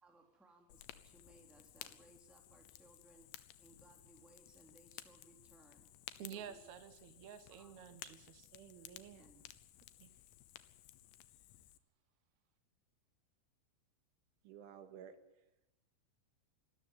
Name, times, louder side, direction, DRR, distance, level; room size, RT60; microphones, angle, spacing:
voice 1, 0.0-6.7 7.1-7.2 7.5-7.7 9.2-9.6, right 2 dB, ahead, 2 dB, 2.2 m, -65 dB
Fire, 0.7-11.8, left 13 dB, 75° left, 3.0 m, -56 dB
voice 2, 6.2-8.5 10.0-10.1, right 9 dB, 60° right, 9 dB, 2.1 m, -51 dB
voice 3, 8.5-9.3 14.4-15.2, right 9 dB, 90° right, 8 dB, 4.3 m, -54 dB
25.5 x 13.5 x 9.3 m, 0.90 s
omnidirectional pair, 5.4 m